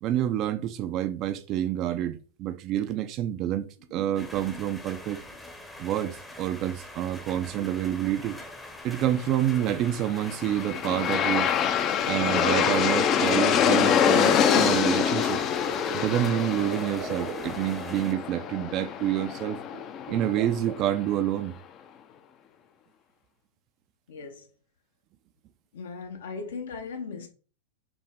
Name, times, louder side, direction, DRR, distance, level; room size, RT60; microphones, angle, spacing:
voice 1, 0.0-3.7 3.9-5.2 5.8-8.4 8.8-11.5 12.1-15.4 15.9-19.6 20.1-21.6, right 11 dB, 45° right, 0.5 m, -28 dB
sound 1, 3.8-4.8 5.2-5.6 6.0-6.5 6.8-8.5 8.9-9.0 9.4-10.6 11.8-14.8 15.7-18.1 18.4-18.5 18.7-18.8 19.4-20.8, right 4 dB, 70° right, 1.2 m, -43 dB
sound 2, 4.1-18.1, left 1 dB, 10° left, 0.8 m, -44 dB
Aircraft, 10.0-21.0, left 8 dB, 35° left, 0.5 m, -25 dB
voice 2, 24.1-24.5 25.7-27.3, left 4 dB, 75° left, 1.0 m, -38 dB
5.9 x 2.1 x 3.5 m
hypercardioid pair, 105°, 0 cm